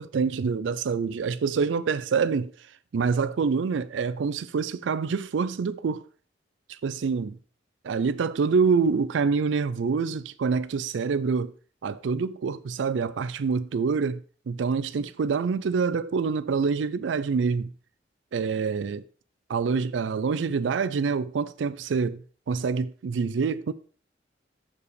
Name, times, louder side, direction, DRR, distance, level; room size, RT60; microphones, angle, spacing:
voice 1, 0.0-2.5 2.9-6.0 6.7-7.4 7.8-11.5 11.8-14.2 14.5-17.7 18.3-19.0 19.5-22.2 22.5-23.7, right 5 dB, 90° right, 0.4 m, -26 dB
6.6 x 4.8 x 5.0 m
head